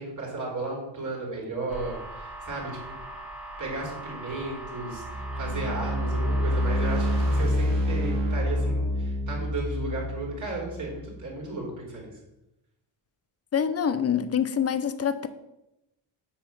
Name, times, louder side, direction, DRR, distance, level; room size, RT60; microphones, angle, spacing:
voice 1, 0.0-2.9 3.6-12.1, right 2 dB, 40° right, 3.2 m, -34 dB
sound 1, 1.7-7.4, right 1 dB, ahead, 1.6 m, -40 dB
sound 2, 4.9-11.1, equal, 65° right, 2.4 m, -27 dB
voice 2, 13.5-15.3, left 8 dB, 35° left, 0.6 m, -25 dB
8.6 x 5.9 x 5.8 m
wide cardioid pair, 140°, 46 cm